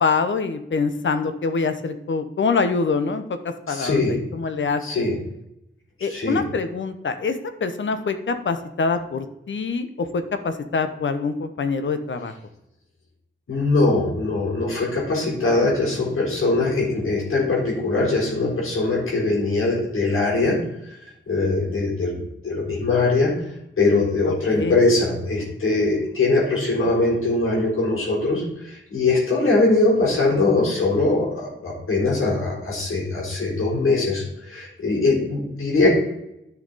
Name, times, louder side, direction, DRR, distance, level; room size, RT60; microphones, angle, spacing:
voice 1, 0.0-3.4 3.7-5.0 6.0-12.3 24.3-24.8, left 4 dB, 65° left, 9 dB, 1.0 m, -25 dB
voice 2, 3.7-4.2 4.8-5.2 6.1-6.5 13.5-20.6 21.0-23.3 23.8-35.9, left 3 dB, 85° left, -5 dB, 4.0 m, -21 dB
11.0 x 5.9 x 4.2 m, 0.83 s
wide cardioid pair, 100°, 21 cm